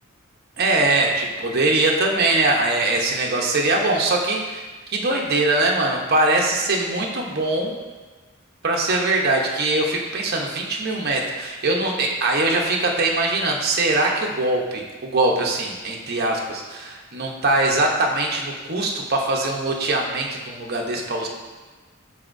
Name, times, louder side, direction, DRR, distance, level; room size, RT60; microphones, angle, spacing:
voice 1, 0.6-7.8 8.6-21.3, right 2 dB, 50° right, 0 dB, 1.0 m, -22 dB
12.5 x 4.2 x 2.7 m, 1.3 s
head